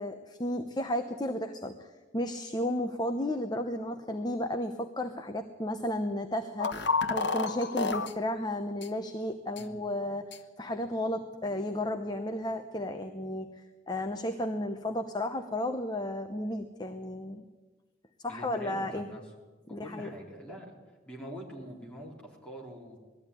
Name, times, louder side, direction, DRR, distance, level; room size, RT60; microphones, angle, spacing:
voice 1, 0.0-17.4 18.2-19.1 19.7-20.1, left 1 dB, 20° left, 6 dB, 0.9 m, -33 dB
sound 1, 6.6-8.1 8.8-8.9 9.6-9.7 10.3-10.4, left 4 dB, 60° left, 1.3 m, -30 dB
voice 2, 18.3-19.2 19.8-20.7 21.0-23.0, equal, 5° left, -4 dB, 4.2 m, -44 dB
20.0 x 14.0 x 9.8 m, 1.3 s
head